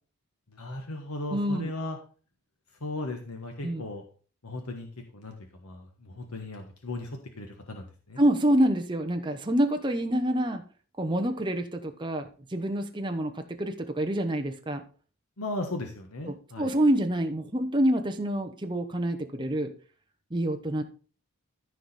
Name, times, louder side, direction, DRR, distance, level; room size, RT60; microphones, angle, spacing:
voice 1, 0.5-2.0 2.8-4.0 4.4-4.9 5.1-5.3 5.6-8.2 15.4-16.7, left 2 dB, 80° left, 4 dB, 1.3 m, -36 dB
voice 2, 1.3-1.7 3.6-3.8 8.2-10.6 11.0-13.3 13.6-14.8 16.2-19.7 20.3-20.8, right 1 dB, 20° right, 4 dB, 0.9 m, -27 dB
14.0 x 4.9 x 4.2 m, 0.39 s
head